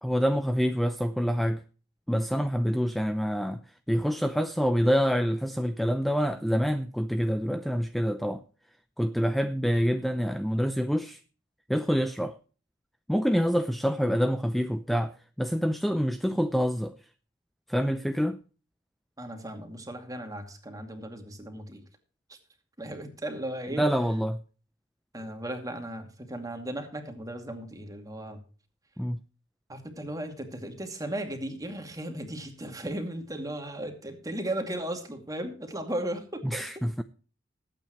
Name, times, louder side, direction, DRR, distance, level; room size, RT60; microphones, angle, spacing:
voice 1, 0.0-1.6 2.1-3.6 3.9-8.4 9.0-11.2 11.7-12.4 13.1-15.1 15.4-17.0 17.7-18.4 23.8-24.4 29.0-29.2 36.4-37.0, equal, ahead, 0.6 m, -26 dB
voice 2, 19.2-21.8 22.3-22.4 22.8-23.9 25.1-28.4 29.7-36.7, right 1 dB, 20° right, 2.5 m, -36 dB
19.5 x 8.9 x 3.1 m
head